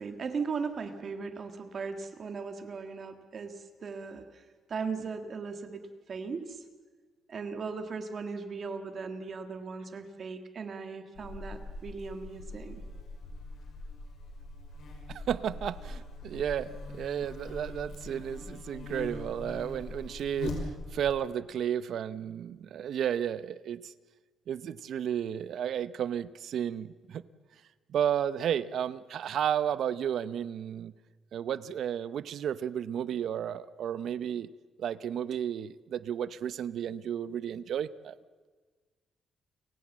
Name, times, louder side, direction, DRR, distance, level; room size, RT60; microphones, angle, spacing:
voice 1, 0.0-6.6 7.3-12.8, right 5 dB, 40° right, 8 dB, 1.8 m, -38 dB
Buzz, 11.1-21.1, left 2 dB, 65° left, 5.8 m, -42 dB
voice 2, 15.1-23.9 24.5-27.2 27.9-30.9 31.3-34.5 34.8-38.1, right 9 dB, 60° right, 17 dB, 0.7 m, -33 dB
30.0 x 16.5 x 7.3 m, 1.4 s
cardioid pair, 145°, 0 cm